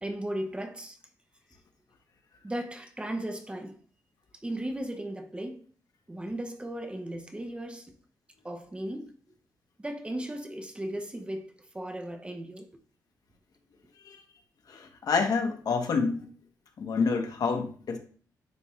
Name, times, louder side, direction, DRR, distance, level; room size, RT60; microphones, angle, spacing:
voice 1, 0.0-1.0 2.4-3.7 4.4-5.6 6.1-7.9 8.4-9.1 9.8-12.7, right 1 dB, 15° right, 0.8 m, -36 dB
voice 2, 14.7-16.3 16.8-18.0, left 5 dB, 60° left, 1.2 m, -28 dB
9.3 x 3.5 x 3.2 m
cardioid pair, 100°, 7 cm